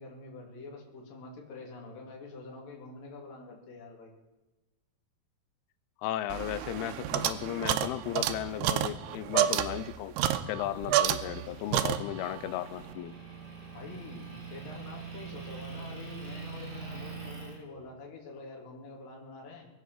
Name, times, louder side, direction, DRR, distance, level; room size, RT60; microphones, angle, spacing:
voice 1, 0.0-4.1 13.7-19.7, left 3 dB, 55° left, 0 dB, 4.1 m, -46 dB
voice 2, 6.0-10.2 10.5-13.1, left 13 dB, 80° left, 15 dB, 2.5 m, -35 dB
sound 1, 6.3-11.5 11.7-12.4, right 12 dB, 85° right, 2.8 m, -29 dB
Motor vehicle (road) / Engine, 11.2-17.5, right 5 dB, 35° right, 6.9 m, -43 dB
22.5 x 8.2 x 7.5 m, 1.1 s
omnidirectional pair, 4.8 m